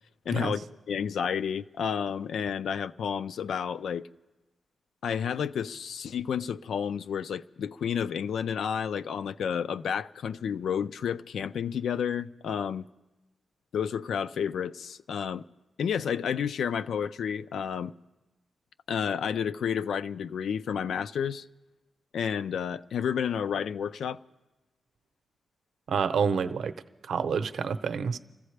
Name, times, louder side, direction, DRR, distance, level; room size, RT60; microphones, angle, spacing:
voice 1, 0.3-4.1 5.0-12.9 13.7-15.4 15.8-17.9 18.9-21.4 22.1-24.2, left 7 dB, 90° left, 0.4 m, -31 dB
voice 2, 25.9-26.7 27.1-28.2, right 6 dB, 75° right, 0.7 m, -28 dB
29.0 x 14.5 x 3.3 m
wide cardioid pair, 160°, 0 cm